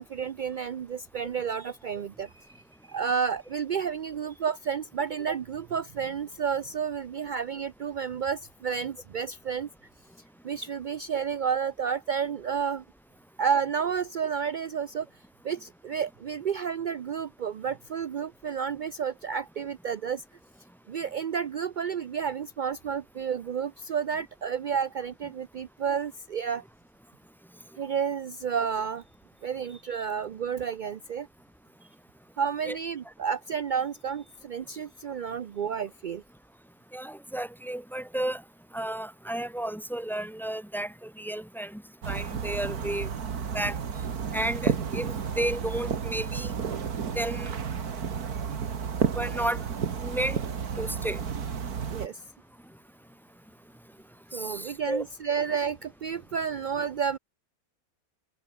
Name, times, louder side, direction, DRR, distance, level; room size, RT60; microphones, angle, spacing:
voice 1, 0.0-9.7 10.4-12.8 13.4-20.2 20.9-26.6 27.8-29.0 29.4-31.3 32.4-36.2 51.9-52.2 54.3-57.2, right 7 dB, 60° right, 0.5 m, -31 dB
voice 2, 36.9-38.4 38.7-43.1 43.5-43.8 44.3-46.5 47.1-47.6 49.1-49.6 50.0-50.4 50.8-51.2 54.3-55.0, right 1 dB, ahead, 1.2 m, -32 dB
sound 1, 42.0-52.1, right 6 dB, 85° right, 2.2 m, -32 dB
omnidirectional pair, 1.6 m